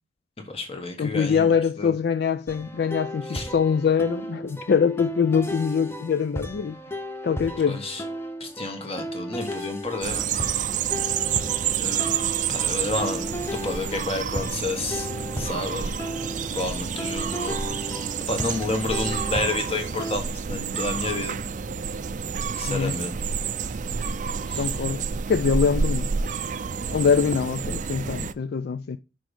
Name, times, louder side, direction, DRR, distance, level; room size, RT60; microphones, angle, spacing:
voice 1, 0.5-1.9 3.3-3.5 7.7-8.0 8.4-10.2 11.8-12.1 12.5-15.1 15.4-15.9 16.5-17.6 17.9-21.4 22.5-23.2 24.5-24.7, left 2 dB, 35° left, 1.5 m, -30 dB
voice 2, 1.0-6.8 7.2-7.8 22.7-22.9 24.5-26.1 26.9-29.0, left 6 dB, 60° left, 0.3 m, -23 dB
sound 1, 2.5-20.2, equal, 15° left, 0.7 m, -35 dB
sound 2, 10.0-28.3, right 6 dB, 45° right, 0.4 m, -29 dB
6.2 x 5.3 x 4.9 m
head